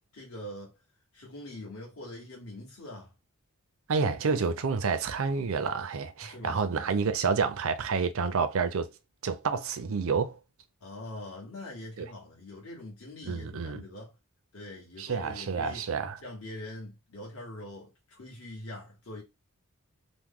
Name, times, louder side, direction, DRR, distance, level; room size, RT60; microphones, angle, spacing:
voice 1, 0.1-0.7 1.1-3.1 6.2-7.0 10.8-14.2 14.5-15.8 16.2-19.2, left 1 dB, 70° left, 1.2 m, -43 dB
voice 2, 3.9-8.9 9.2-10.4 12.0-12.1 13.2-13.8 15.0-16.2, right 5 dB, 65° right, 0.5 m, -29 dB
3.0 x 2.1 x 3.6 m
head